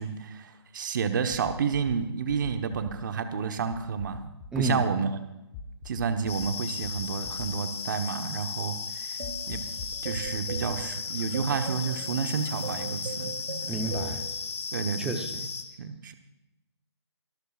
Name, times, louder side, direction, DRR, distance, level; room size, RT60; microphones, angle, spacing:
voice 1, 0.0-4.3 4.6-5.2 5.8-9.6 10.0-13.3 13.7-13.8 14.7-15.5 15.8-16.1, right 6 dB, 45° right, 7 dB, 1.2 m, -30 dB
sound 1, 1.3-2.0 2.3-2.9 3.7-4.6 5.5-6.5 6.8-7.5 9.2-10.0, left 4 dB, 20° left, 1.0 m, -43 dB
voice 2, 4.5-4.8 13.7-14.2 15.0-15.4, right 2 dB, 5° right, 6 dB, 0.8 m, -30 dB
sound 2, 6.3-15.6, left 5 dB, 70° left, 2.2 m, -36 dB
sound 3, 9.2-14.3, right 4 dB, 85° right, 1.5 m, -39 dB
24.0 x 13.0 x 2.5 m, 0.94 s
hypercardioid pair, 160°, 15 cm